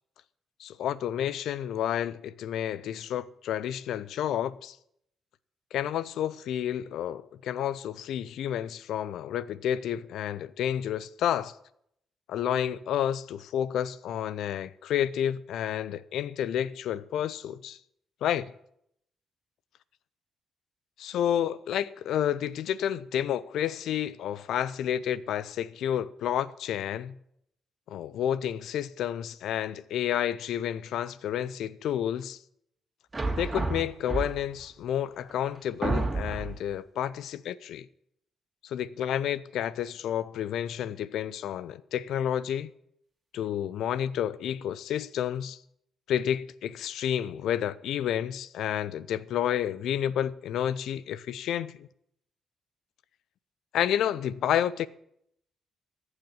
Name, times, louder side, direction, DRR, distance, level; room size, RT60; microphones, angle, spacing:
voice 1, 0.6-4.8 5.7-11.6 12.3-17.8 18.2-18.5 21.0-27.1 27.9-32.4 33.4-37.9 38.6-42.7 43.3-45.6 46.1-51.9 53.7-54.9, left 10 dB, 70° left, 0.5 m, -30 dB
sound 1, 33.1-34.6 35.3-35.4 35.8-36.7, right 2 dB, 30° right, 2.6 m, -30 dB
14.5 x 8.1 x 7.2 m
hypercardioid pair, 45°, 0 cm